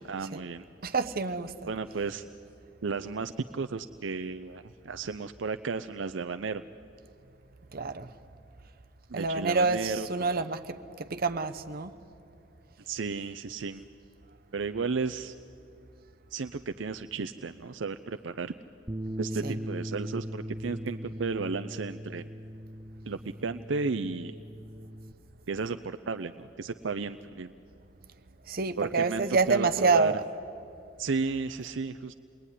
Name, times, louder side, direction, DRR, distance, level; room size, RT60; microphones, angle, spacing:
voice 1, 0.0-0.6 1.6-2.2 2.8-6.6 9.1-10.3 12.9-13.8 14.5-15.3 16.3-18.5 19.2-22.2 23.1-24.3 25.5-27.5 28.8-30.1 31.0-32.1, right 4 dB, 70° right, 0.6 m, -33 dB
voice 2, 0.8-1.7 7.7-8.1 9.1-11.9 19.4-19.5 28.5-30.2, right 4 dB, 50° right, 0.9 m, -27 dB
Bass guitar, 18.9-25.1, equal, 15° right, 0.6 m, -39 dB
28.0 x 21.5 x 9.9 m
head